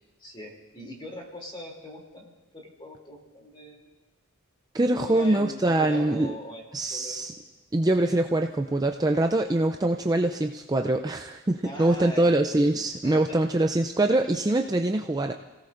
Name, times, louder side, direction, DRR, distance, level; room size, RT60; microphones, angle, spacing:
voice 1, 0.2-3.9 4.9-7.2 11.6-12.5 13.0-13.4, equal, 25° left, 0 dB, 2.9 m, -41 dB
voice 2, 4.7-6.3 6.7-7.3 7.7-15.3, right 2 dB, 15° right, 4 dB, 0.4 m, -24 dB
30.0 x 17.5 x 2.6 m, 1.2 s
head